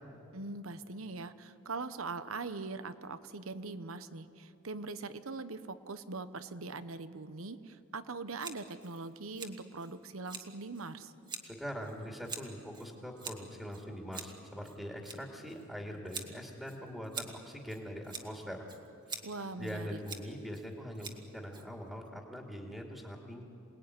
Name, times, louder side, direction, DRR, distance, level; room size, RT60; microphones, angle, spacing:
voice 1, 0.3-11.1 19.2-20.0, right 3 dB, 75° right, 12 dB, 1.1 m, -42 dB
Scissors, 8.4-22.1, right 4 dB, 20° right, 1.8 m, -48 dB
voice 2, 11.4-18.7 19.1-19.2 19.6-23.4, equal, ahead, 1 dB, 2.5 m, -43 dB
27.5 x 19.5 x 9.8 m, 2.9 s
head